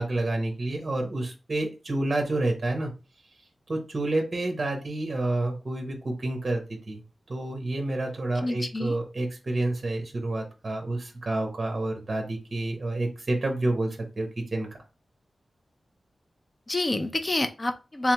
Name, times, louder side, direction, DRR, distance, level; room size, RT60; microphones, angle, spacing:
voice 1, 0.0-2.9 3.7-7.0 7.3-14.7, right 2 dB, 35° right, 2 dB, 0.9 m, -29 dB
voice 2, 8.4-9.0 16.7-18.1, left 1 dB, 25° left, 8 dB, 0.4 m, -27 dB
3.6 x 3.2 x 2.9 m, 0.32 s
wide cardioid pair, 145°, 0 cm